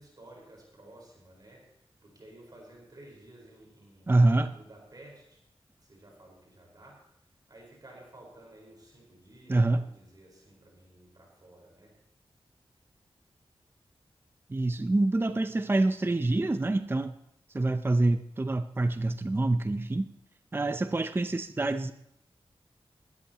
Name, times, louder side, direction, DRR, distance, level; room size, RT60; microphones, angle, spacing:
voice 1, 0.0-5.4 5.8-7.0 7.5-11.9, right 1 dB, 40° right, 4.8 m, -53 dB
voice 2, 4.1-4.5 9.5-9.8 14.5-17.2 17.5-20.1 20.5-21.9, right 2 dB, 20° right, 0.5 m, -26 dB
20.0 x 13.5 x 3.0 m
wide cardioid pair, 110°, 10 cm